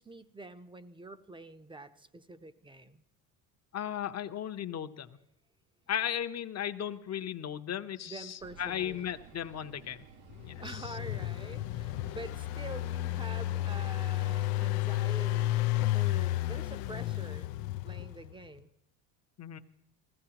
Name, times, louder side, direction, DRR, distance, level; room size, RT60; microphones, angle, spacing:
voice 1, 0.0-3.0 8.1-9.1 10.6-15.7 15.9-17.5 17.8-18.7, right 2 dB, 10° right, 11 dB, 0.7 m, -46 dB
voice 2, 3.7-5.1 5.9-10.0 10.4-11.0 19.4-19.6, left 10 dB, 35° left, 8 dB, 0.8 m, -36 dB
sound 1, 8.4-14.7, right 8 dB, 65° right, 1.0 m, -54 dB
Engine, 10.3-18.3, left 16 dB, 80° left, 0.6 m, -32 dB
20.0 x 15.5 x 2.9 m, 0.83 s
supercardioid pair, 80°, 46 cm